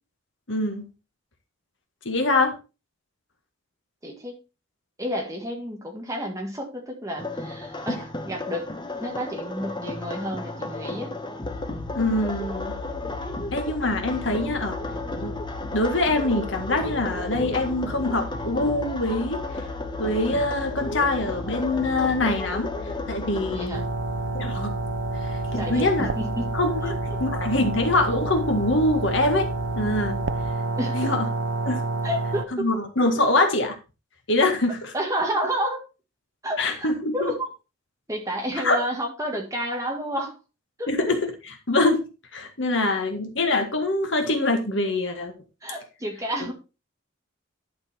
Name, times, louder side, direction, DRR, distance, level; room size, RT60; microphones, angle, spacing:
voice 1, 0.5-0.9 2.1-2.6 7.9-8.0 12.0-12.7 13.5-14.8 15.2-15.4 15.7-19.4 20.0-22.7 23.1-23.8 24.3-24.8 25.2-26.1 26.5-26.8 27.2-29.5 29.8-30.2 30.9-31.3 31.6-31.8 32.6-33.8 34.3-34.9 36.6-37.3 38.6-38.8 40.9-41.3 41.7-42.0 42.3-45.3, left 2 dB, 60° left, 5 dB, 1.7 m, -24 dB
voice 2, 4.0-4.4 5.0-8.7 9.0-11.1 23.5-23.9 25.5-27.2 30.8-31.2 32.0-32.7 34.9-35.8 36.4-37.5 38.1-40.4 40.8-40.9 45.6-46.5, equal, 15° right, 1 dB, 1.8 m, -30 dB
sound 1, 7.2-23.7, left 2 dB, 20° left, 1.0 m, -34 dB
sound 2, 11.4-30.5, left 3 dB, 75° left, 1.2 m, -38 dB
sound 3, 23.7-32.5, right 3 dB, 60° right, 0.7 m, -29 dB
11.0 x 5.1 x 4.4 m, 0.30 s
head